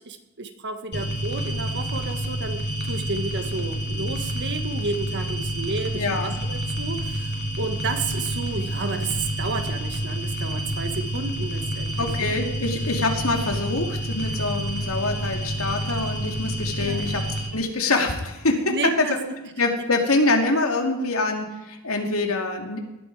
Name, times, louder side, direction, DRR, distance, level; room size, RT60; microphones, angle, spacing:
voice 1, 0.0-11.9 12.2-12.3 16.8-17.0 18.7-19.4, right 3 dB, 55° right, 7 dB, 1.6 m, -31 dB
sound 1, 0.9-17.5, right 1 dB, 50° left, 3.4 m, -28 dB
voice 2, 5.9-6.4 12.0-17.2 17.5-19.1 19.6-22.8, left 2 dB, 75° left, 3 dB, 2.7 m, -25 dB
19.5 x 13.0 x 4.9 m, 1.0 s
head